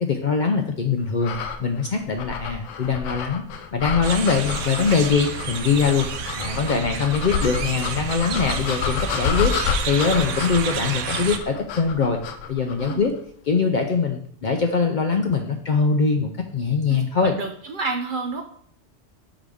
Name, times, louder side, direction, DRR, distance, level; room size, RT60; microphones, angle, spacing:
voice 1, 0.0-3.4 3.7-9.5 9.9-12.2 12.5-13.1 13.5-17.3, left 5 dB, 55° left, 4 dB, 0.5 m, -22 dB
sound 1, 1.2-13.1, left 6 dB, 85° left, 1.0 m, -29 dB
sound 2, 4.0-11.4, right 7 dB, 80° right, 1.0 m, -30 dB
voice 2, 16.9-18.4, right 3 dB, 55° right, 4 dB, 0.6 m, -29 dB
5.6 x 4.8 x 3.5 m, 0.62 s
omnidirectional pair, 1.2 m